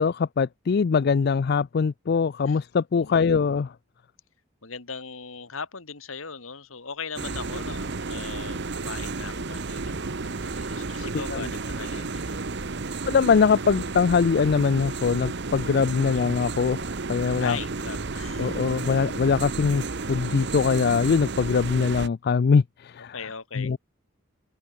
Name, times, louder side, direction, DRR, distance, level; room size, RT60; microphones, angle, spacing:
voice 1, 0.0-3.7 11.3-11.5 13.1-17.6 18.4-23.1 23.6-23.8, left 5 dB, 50° left, 0.4 m, -22 dB
voice 2, 2.9-3.4 4.6-12.4 16.0-16.2 17.4-19.1 23.1-23.7, left 5 dB, 80° left, 2.3 m, -39 dB
sound 1, 7.2-22.1, right 3 dB, 55° right, 1.0 m, -32 dB
open air
head